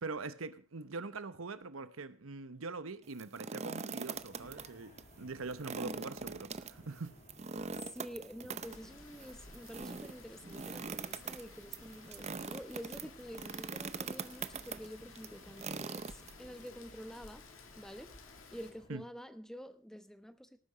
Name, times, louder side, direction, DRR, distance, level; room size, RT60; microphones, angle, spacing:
voice 1, 0.0-7.2 18.9-19.0, right 3 dB, 80° right, 0.9 m, -43 dB
sound 1, 3.0-4.7 5.0-5.1 5.5-16.7, right 5 dB, 35° right, 0.7 m, -42 dB
sound 2, 4.1-18.9, left 1 dB, 40° left, 2.9 m, -60 dB
voice 2, 5.7-6.2 7.9-17.5 17.8-18.1 18.5-20.6, equal, 5° left, 1.0 m, -48 dB
Rain, 8.6-18.7, left 4 dB, 75° left, 2.3 m, -56 dB
18.0 x 9.5 x 5.0 m
head